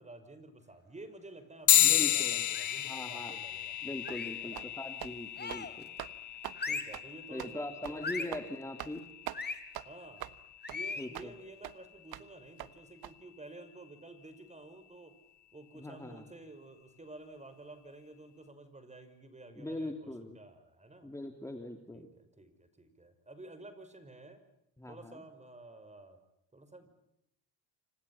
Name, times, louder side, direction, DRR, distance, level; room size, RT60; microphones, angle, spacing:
voice 1, 0.0-3.7 4.4-4.6 5.5-5.9 6.6-8.3 9.8-10.3 10.7-15.2 15.5-21.1 21.9-24.4 24.9-26.2 26.5-26.9, right 2 dB, 15° right, 10 dB, 5.7 m, -51 dB
sound 1, 1.7-11.5, left 12 dB, 50° left, 0.9 m, -33 dB
voice 2, 1.8-2.5 2.8-3.4 3.8-5.9 7.3-9.0 11.0-11.3 15.7-16.2 19.5-20.4 21.0-22.1 24.8-25.2, left 1 dB, 5° left, 5 dB, 2.9 m, -41 dB
sound 2, 2.5-3.0 4.0-4.5 5.4-5.8 6.5-7.0 8.0-8.4 9.3-9.6 10.6-11.1, left 4 dB, 25° left, 3.1 m, -39 dB
sound 3, 4.1-4.2 4.5-4.7 5.0-5.1 5.4-5.7 6.0-6.1 6.4-6.6 6.9-7.1 7.4-7.5 7.8-8.0 8.3-8.5 8.8-9.0 9.3-9.4 9.7-9.9 10.2-10.4 10.7-10.8 11.1-11.3 11.6-11.7 12.1-12.3 12.6-12.7 13.0-13.1, right 14 dB, 65° right, 1.3 m, -42 dB
29.5 x 25.5 x 5.7 m, 0.80 s
cardioid pair, 105°, 39 cm